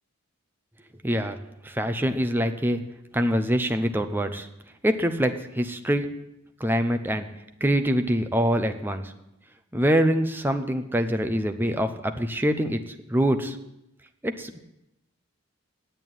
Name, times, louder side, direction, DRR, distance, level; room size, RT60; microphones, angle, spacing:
voice 1, 1.0-1.4 1.6-2.8 3.1-4.5 4.8-6.0 6.6-7.3 7.6-9.1 9.7-12.8 13.1-13.6 14.2-14.6, equal, 10° right, 7 dB, 0.7 m, -24 dB
9.1 x 8.3 x 9.1 m, 0.88 s
head